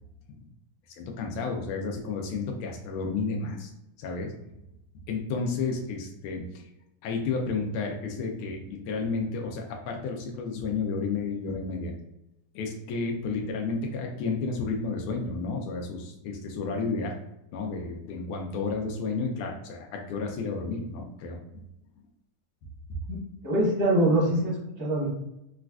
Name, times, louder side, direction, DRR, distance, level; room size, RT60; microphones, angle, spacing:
voice 1, 1.0-3.7 4.0-4.3 5.1-6.6 7.0-11.9 12.5-17.1 17.5-21.4, left 4 dB, 85° left, 1 dB, 1.5 m, -31 dB
voice 2, 23.1-25.1, right 1 dB, 25° right, -5 dB, 0.5 m, -24 dB
4.1 x 2.4 x 2.3 m, 0.86 s
omnidirectional pair, 2.3 m